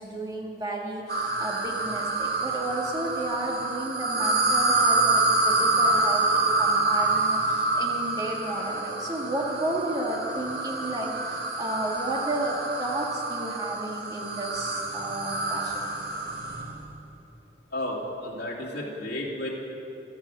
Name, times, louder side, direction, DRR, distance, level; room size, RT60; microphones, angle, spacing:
voice 1, 0.0-15.8, right 1 dB, 20° right, -2 dB, 2.0 m, -32 dB
sound 1, 1.1-16.7, right 2 dB, 60° right, 1.6 m, -27 dB
voice 2, 17.7-19.5, left 1 dB, 75° left, -4 dB, 2.6 m, -32 dB
13.0 x 11.0 x 7.8 m, 2.8 s
head